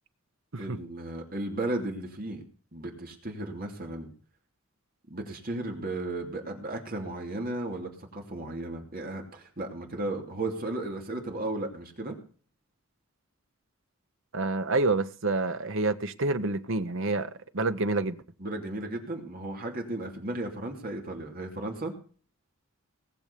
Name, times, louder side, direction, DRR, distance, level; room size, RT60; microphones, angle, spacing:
voice 1, 0.6-2.4 2.7-4.1 5.1-12.2 18.4-21.9, right 2 dB, 45° right, 2.7 m, -35 dB
voice 2, 14.3-18.2, right 3 dB, 60° right, 1.0 m, -28 dB
19.0 x 7.0 x 6.8 m
head